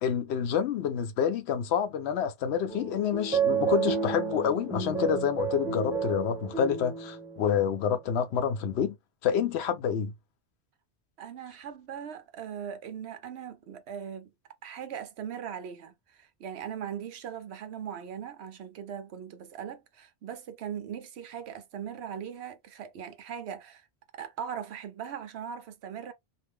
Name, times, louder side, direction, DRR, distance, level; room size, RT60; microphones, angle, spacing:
voice 1, 0.0-8.9 9.2-10.1, left 8 dB, 80° left, 0.9 m, -28 dB
sound 1, 2.7-7.5, right 6 dB, 5° right, 0.6 m, -31 dB
voice 2, 11.2-14.3 14.6-23.9 24.1-26.1, right 8 dB, 80° right, 0.9 m, -39 dB
2.6 x 2.0 x 3.4 m
omnidirectional pair, 1.1 m